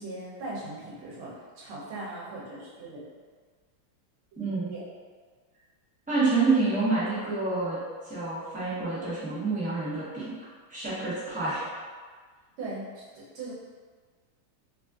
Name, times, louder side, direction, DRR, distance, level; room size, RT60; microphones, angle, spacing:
voice 1, 0.0-3.1 4.3-4.8 12.6-13.5, right 2 dB, 80° right, -6 dB, 1.7 m, -39 dB
voice 2, 4.4-4.7 6.1-10.3 10.7-11.6, right 3 dB, 5° right, -12 dB, 0.6 m, -28 dB
4.0 x 2.5 x 2.4 m, 1.5 s
omnidirectional pair, 2.3 m